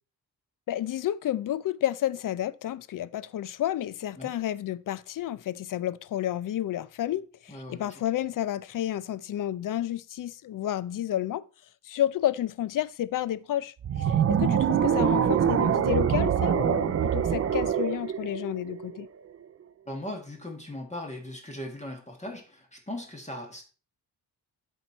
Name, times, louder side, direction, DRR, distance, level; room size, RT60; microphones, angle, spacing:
voice 1, 0.7-11.4 11.8-19.1, left 12 dB, 55° left, 0.5 m, -31 dB
voice 2, 7.5-8.0 19.9-23.6, left 1 dB, 15° left, 1.5 m, -39 dB
sound 1, 13.8-19.1, right 9 dB, 35° right, 0.4 m, -25 dB
12.5 x 4.4 x 4.4 m
wide cardioid pair, 175°, 40 cm